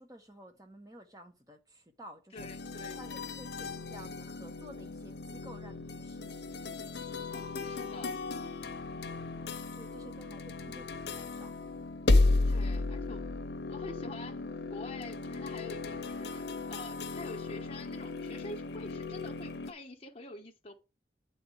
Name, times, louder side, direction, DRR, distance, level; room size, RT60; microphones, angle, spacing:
voice 1, 0.0-2.5 3.0-6.6 8.9-9.4 9.8-11.5, equal, 20° right, 1.3 m, -52 dB
voice 2, 2.3-3.1 7.3-8.1 12.5-13.3 13.7-14.4 14.7-20.8, left 2 dB, 30° left, 1.1 m, -46 dB
sound 1, 2.4-19.7, left 3 dB, 80° left, 0.8 m, -34 dB
8.6 x 4.1 x 6.5 m
head